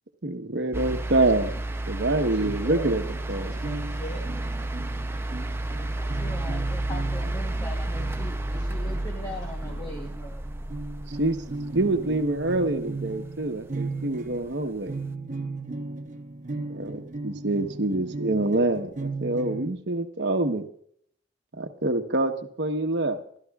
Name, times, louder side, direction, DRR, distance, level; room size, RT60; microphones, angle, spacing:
voice 1, 0.2-1.5 1.9-3.0 3.3-3.6 11.2-11.4 11.7-14.9 16.7-20.6 21.6-23.2, right 2 dB, 65° right, 6 dB, 1.1 m, -26 dB
sound 1, 0.7-13.0 14.3-14.4, right 1 dB, 15° right, 0.6 m, -31 dB
voice 2, 2.0-2.9 3.4-4.7, left 1 dB, 40° left, 2 dB, 4.2 m, -42 dB
sound 2, 2.4-19.7, right 3 dB, 45° right, 0.9 m, -37 dB
voice 3, 5.7-10.7, left 1 dB, 20° left, 3 dB, 1.0 m, -40 dB
26.5 x 12.5 x 2.4 m, 0.64 s
head